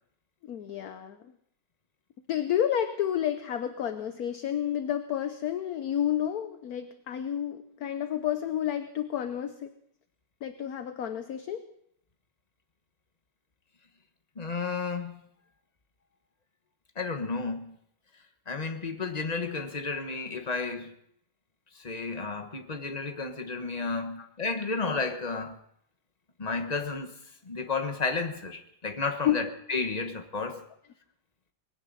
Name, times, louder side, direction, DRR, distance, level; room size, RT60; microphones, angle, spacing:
voice 1, 0.5-1.2 2.3-9.7 10.4-11.6 24.2-24.3 29.2-29.4, left 10 dB, 60° left, 9 dB, 1.1 m, -30 dB
voice 2, 14.4-15.2 16.9-17.8 18.5-20.9 21.7-25.6 26.4-27.1 27.4-30.6, left 4 dB, 25° left, 7 dB, 1.1 m, -32 dB
20.5 x 16.5 x 4.1 m, 0.71 s
omnidirectional pair, 2.0 m